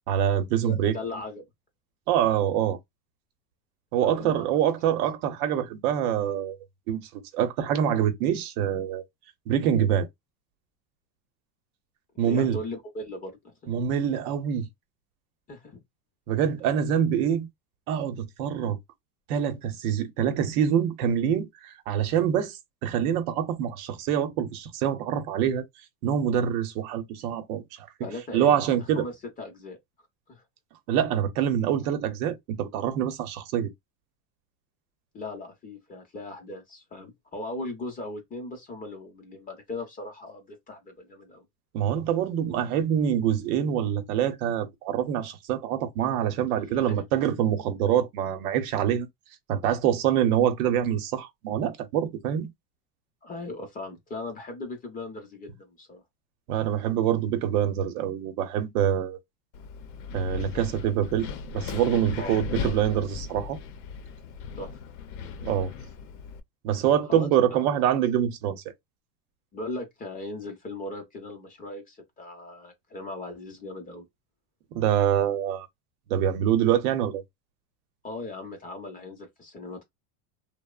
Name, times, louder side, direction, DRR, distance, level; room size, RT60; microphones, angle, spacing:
voice 1, 0.1-1.0 2.1-2.8 3.9-6.6 6.9-9.0 9.5-10.1 12.2-12.6 13.7-14.7 16.3-17.5 17.9-18.8 19.3-25.6 26.0-27.9 28.3-29.1 30.9-33.7 41.7-49.1 49.5-52.5 56.5-59.2 60.1-61.3 61.5-63.6 65.4-65.7 66.6-68.6 74.7-75.7 76.1-77.2, right 9 dB, 75° right, 0.7 m, -25 dB
voice 2, 0.6-1.4 4.0-4.5 12.1-13.5 15.5-15.8 28.0-29.8 30.3-30.4 35.1-41.4 46.7-47.0 53.2-56.0 62.2-62.7 64.6-64.7 67.1-67.8 69.5-74.1 78.0-79.8, left 2 dB, 20° left, 0.6 m, -38 dB
Wind, 59.5-66.4, left 6 dB, 75° left, 0.7 m, -37 dB
2.8 x 2.0 x 2.3 m
supercardioid pair, 150°, 44 cm